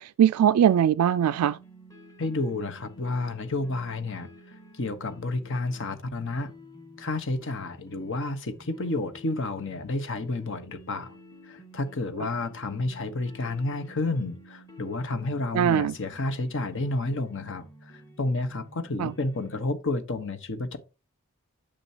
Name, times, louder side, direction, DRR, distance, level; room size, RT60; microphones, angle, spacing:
voice 1, 0.0-1.6 15.5-15.9 19.0-19.1, right 9 dB, 80° right, 0.3 m, -21 dB
sound 1, 1.3-19.6, equal, 15° left, 1.6 m, -51 dB
voice 2, 2.2-6.5 7.0-11.2 11.4-20.8, left 2 dB, 55° left, 1.1 m, -31 dB
8.9 x 6.9 x 2.8 m
head